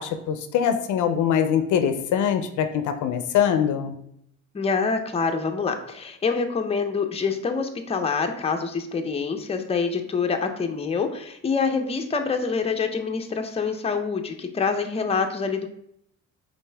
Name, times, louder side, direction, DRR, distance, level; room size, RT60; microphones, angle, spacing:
voice 1, 0.0-3.9, left 8 dB, 75° left, 9 dB, 0.5 m, -23 dB
voice 2, 4.5-15.7, left 5 dB, 20° left, 5 dB, 0.5 m, -26 dB
5.4 x 2.6 x 3.3 m, 0.72 s
cardioid pair, 90°, 30 cm